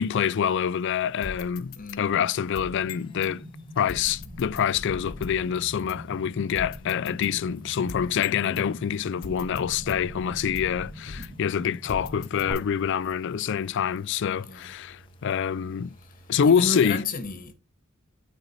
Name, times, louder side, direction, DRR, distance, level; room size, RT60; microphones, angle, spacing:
voice 1, 0.0-3.4 3.8-15.9 16.3-17.0, left 8 dB, 60° left, 0.4 m, -26 dB
sound 1, 1.2-3.3 3.9-5.5 5.9-6.0 6.5-8.7 9.2-11.5 11.9-13.0, left 3 dB, 75° left, 0.9 m, -42 dB
voice 2, 1.8-2.1 14.4-14.7 16.4-17.5, left 3 dB, 40° left, 1.4 m, -32 dB
sound 2, 2.5-16.5, equal, 25° left, 0.8 m, -52 dB
sound 3, 2.5-12.5, equal, 5° left, 3.1 m, -44 dB
9.2 x 4.3 x 4.2 m
head